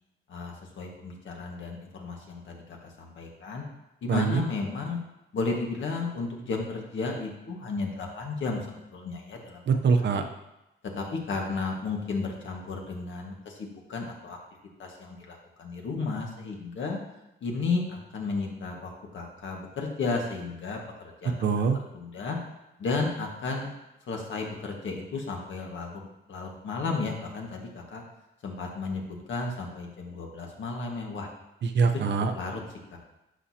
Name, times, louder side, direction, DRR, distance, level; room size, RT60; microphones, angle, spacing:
voice 1, 0.3-3.6 4.0-5.0 5.3-8.6 8.9-9.6 9.9-10.2 10.9-14.4 14.8-17.0 17.4-20.8 21.2-21.4 21.9-22.4 22.8-23.7 24.1-28.0 28.4-29.0 29.3-31.3 32.3-32.6 32.9-33.0, left 3 dB, 65° left, 0 dB, 1.7 m, -33 dB
voice 2, 4.1-4.4 9.7-10.3 21.4-21.8 31.6-32.3, right 5 dB, 55° right, 6 dB, 0.8 m, -23 dB
11.0 x 6.3 x 2.9 m, 0.91 s
cardioid pair, 115°, 21 cm